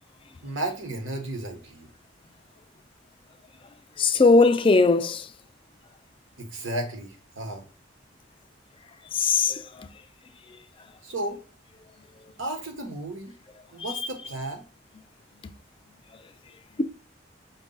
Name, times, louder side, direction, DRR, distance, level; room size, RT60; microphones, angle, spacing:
voice 1, 0.4-1.9 6.4-7.7 11.0-11.4 12.4-13.3 13.7-14.6, right 1 dB, 75° right, 1.2 m, -33 dB
voice 2, 4.0-5.3 9.2-9.6 13.8-14.1, left 3 dB, 25° left, 0.4 m, -19 dB
5.4 x 2.4 x 3.8 m
head